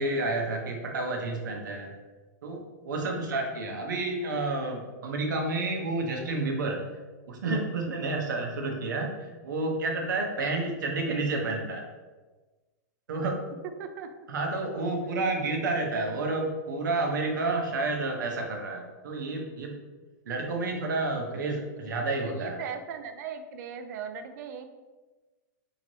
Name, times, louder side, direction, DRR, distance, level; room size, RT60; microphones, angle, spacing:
voice 1, 0.0-1.9 2.4-6.8 7.3-11.9 13.1-13.4 14.3-19.8 20.3-22.6, right 2 dB, 85° right, 1 dB, 0.7 m, -30 dB
voice 2, 13.8-14.3 21.3-21.4 22.2-24.7, right 6 dB, 65° right, 7 dB, 0.4 m, -39 dB
3.0 x 2.8 x 2.6 m, 1.2 s
hypercardioid pair, 130°, 10 cm